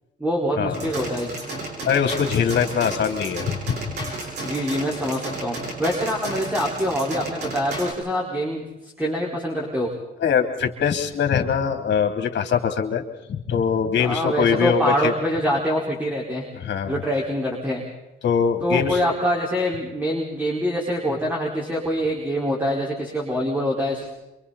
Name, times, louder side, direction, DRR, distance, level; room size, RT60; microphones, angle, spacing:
voice 1, 0.2-1.3 4.4-8.6 9.0-9.9 14.0-16.5 16.9-17.8 18.6-24.1, equal, 10° right, -2 dB, 4.8 m, -25 dB
sound 1, 0.7-7.9, right 2 dB, 60° right, 8.0 m, -33 dB
voice 2, 1.8-3.8 10.2-13.0 13.3-15.1 16.5-17.0 18.2-19.0, left 7 dB, 60° left, 5 dB, 3.3 m, -22 dB
27.5 x 25.0 x 4.2 m, 0.94 s
cardioid pair, 90°, 20 cm